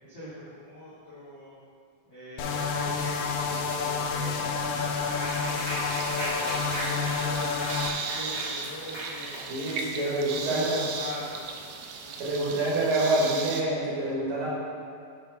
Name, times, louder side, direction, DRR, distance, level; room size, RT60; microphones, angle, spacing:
voice 1, 0.0-1.5 2.1-7.6 8.1-9.4 9.9-11.6 12.0-12.8, left 1 dB, 65° left, -12 dB, 1.1 m, -42 dB
sound 1, 2.4-7.9, left 5 dB, 85° left, 2.6 m, -29 dB
Clapping, 5.1-10.4, right 1 dB, 45° right, 1.3 m, -37 dB
sound 2, 5.6-13.6, right 5 dB, 90° right, 2.1 m, -37 dB
voice 2, 9.5-10.8 12.2-14.5, right 2 dB, 65° right, -6 dB, 2.8 m, -27 dB
8.7 x 3.6 x 4.8 m, 2.2 s
omnidirectional pair, 4.7 m